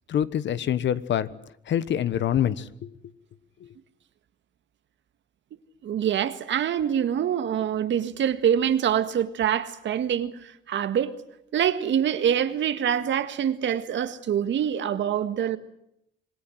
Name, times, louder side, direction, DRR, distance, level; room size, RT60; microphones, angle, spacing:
voice 1, 0.1-1.3 1.7-2.9 3.6-3.7, left 10 dB, 65° left, 1.3 m, -25 dB
voice 2, 5.5-11.1 11.5-15.6, right 9 dB, 70° right, 1.9 m, -25 dB
26.5 x 20.5 x 7.9 m
cardioid pair, 90°, 20 cm